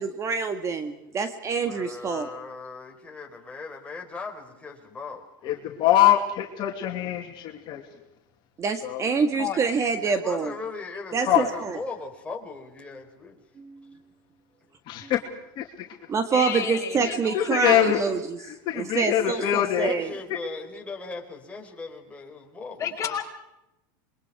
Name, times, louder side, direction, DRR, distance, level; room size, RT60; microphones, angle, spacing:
voice 1, 0.0-2.3 8.6-10.5 11.1-11.8 13.6-13.8 16.1-18.4 18.7-20.1, right 5 dB, 30° right, 8 dB, 1.7 m, -26 dB
voice 2, 1.6-5.5 10.0-13.4 19.0-23.1, left 4 dB, 10° left, 1 dB, 4.4 m, -38 dB
voice 3, 5.4-7.8 8.8-9.0 11.3-11.5 14.9-15.3 15.6-15.9 17.3-18.0 18.5-19.9, left 12 dB, 45° left, 1 dB, 2.7 m, -23 dB
voice 4, 9.4-9.7 16.3-18.0 22.8-23.2, left 8 dB, 30° left, 1 dB, 5.5 m, -32 dB
27.5 x 23.0 x 4.9 m, 0.89 s
supercardioid pair, 125°, 11 cm